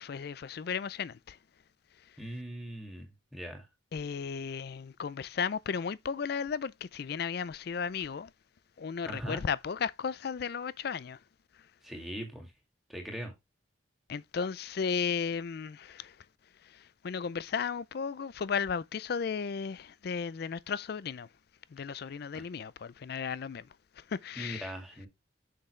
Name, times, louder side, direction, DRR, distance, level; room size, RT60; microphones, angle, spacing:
voice 1, 0.0-1.4 3.9-8.3 8.8-11.2 14.1-16.2 16.6-21.3 21.7-23.7 24.0-24.7, left 6 dB, 55° left, 0.4 m, -35 dB
voice 2, 2.2-3.7 9.1-9.4 11.8-12.5 12.9-13.3 22.3-22.4 24.4-25.1, equal, ahead, 2.1 m, -40 dB
6.7 x 5.7 x 3.2 m
head